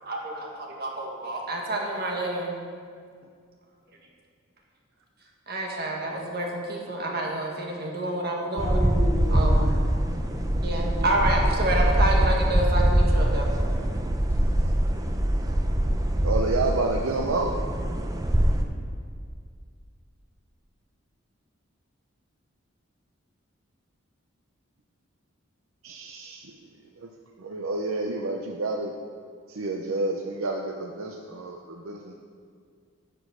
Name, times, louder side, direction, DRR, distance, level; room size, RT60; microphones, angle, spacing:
voice 1, 0.0-2.6 5.5-8.8 9.3-9.5 10.6-13.5, right 1 dB, 50° right, -1 dB, 1.6 m, -28 dB
voice 2, 8.6-9.7 13.7-14.1 14.4-15.0, left 1 dB, 10° left, -3 dB, 1.2 m, -35 dB
sound 1, 8.6-18.6, right 1 dB, 15° right, 0.6 m, -23 dB
voice 3, 16.2-17.5 25.8-26.4 27.0-27.1 27.4-28.9 29.5-32.1, right 3 dB, 80° right, 2 dB, 0.6 m, -29 dB
10.0 x 6.2 x 6.2 m, 2.1 s
head